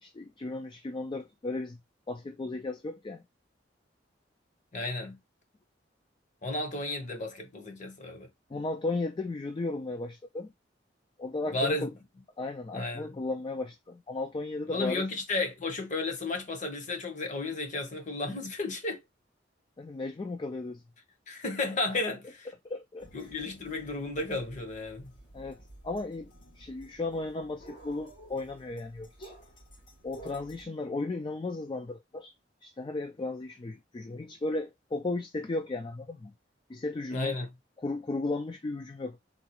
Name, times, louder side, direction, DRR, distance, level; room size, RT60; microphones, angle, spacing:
voice 1, 0.0-1.8 2.1-3.2 8.5-10.5 11.2-11.9 12.4-15.0 19.8-20.8 22.6-23.3 25.3-29.3 30.0-32.3 32.6-36.3 36.7-37.4 37.8-39.2, left 2 dB, 25° left, 0.3 m, -35 dB
voice 2, 4.7-5.2 6.4-8.3 11.5-11.9 12.7-13.1 14.7-19.0 21.3-22.5 23.1-25.1 37.1-37.5, left 2 dB, 40° left, 0.9 m, -33 dB
sound 1, 23.0-30.6, right 1 dB, 85° left, 2.6 m, -52 dB
3.9 x 2.3 x 2.8 m
head